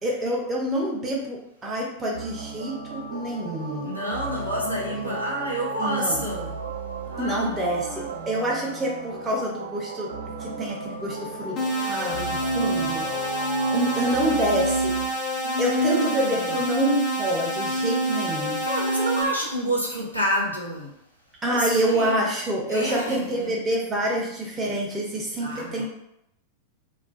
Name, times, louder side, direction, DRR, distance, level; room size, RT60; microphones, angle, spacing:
voice 1, 0.0-3.9 4.6-5.2 5.8-6.2 7.2-10.1 10.4-13.1 13.3-14.9 15.6-18.6 21.4-25.8, right 1 dB, 15° right, -2 dB, 0.7 m, -27 dB
sound 1, 2.1-15.1, right 3 dB, 65° right, 0.4 m, -35 dB
voice 2, 3.8-6.5 7.0-8.1 15.4-16.5 18.6-20.9 21.4-22.3 22.7-23.6 25.4-25.8, equal, 90° left, -4 dB, 0.6 m, -29 dB
sound 2, 11.6-19.2, right 1 dB, 40° left, 0.7 m, -26 dB
2.3 x 2.2 x 2.5 m, 0.78 s
figure-of-eight pair, 90°, 0 cm